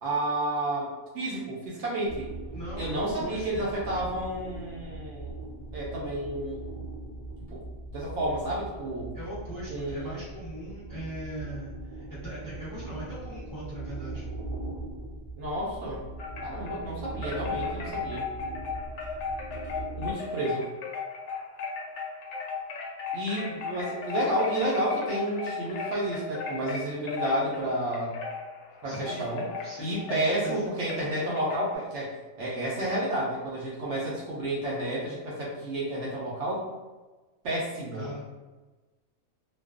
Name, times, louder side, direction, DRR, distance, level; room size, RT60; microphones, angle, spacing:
voice 1, 0.0-2.3 2.8-5.3 5.7-6.6 7.5-9.1 9.7-10.2 15.4-16.0 16.4-18.3 20.0-20.7 23.1-28.2 28.8-29.5 29.8-36.7 37.4-38.1, right 1 dB, 65° right, -5 dB, 0.8 m, -31 dB
sound 1, 2.0-20.1, right 2 dB, 45° right, 0.5 m, -40 dB
voice 2, 2.5-3.6 9.1-14.2 28.8-30.6 37.9-38.2, equal, 25° left, -10 dB, 0.4 m, -40 dB
Wind chime, 16.2-16.8 17.2-31.8, left 5 dB, 65° left, 0.8 m, -36 dB
2.4 x 2.2 x 2.4 m, 1.2 s
omnidirectional pair, 1.5 m